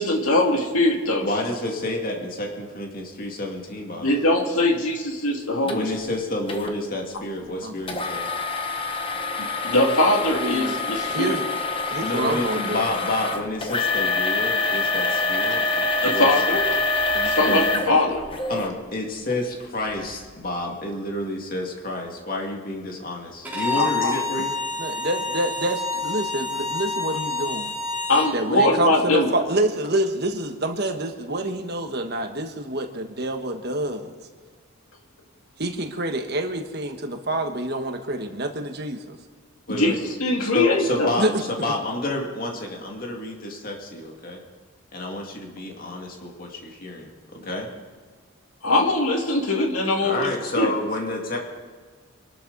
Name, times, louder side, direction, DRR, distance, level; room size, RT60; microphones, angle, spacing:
voice 1, 0.0-1.3 4.0-5.8 9.4-11.4 16.0-16.6 17.2-18.3 23.8-24.2 28.1-29.3 39.7-41.1 48.6-50.7, left 2 dB, 85° left, 2 dB, 2.4 m, -22 dB
voice 2, 1.2-4.1 5.6-8.3 12.0-16.3 17.4-17.8 18.5-24.5 39.7-40.0 40.4-44.4 44.9-47.7 50.0-51.4, left 1 dB, 40° left, 0 dB, 2.3 m, -29 dB
sound 1, 5.7-5.8 6.5-6.7 7.9-18.7 19.3-19.4 20.0-20.1, left 3 dB, 25° left, 1.3 m, -25 dB
voice 3, 10.4-10.8 11.1-11.5 11.9-12.9 17.1-17.6 24.8-27.7 28.3-34.1 35.6-39.2 41.2-41.3 41.6-41.7, right 1 dB, 50° right, 5 dB, 1.4 m, -27 dB
Bowed string instrument, 23.4-28.3, left 3 dB, 10° right, 3.8 m, -28 dB
25.5 x 12.0 x 4.1 m, 1.5 s
head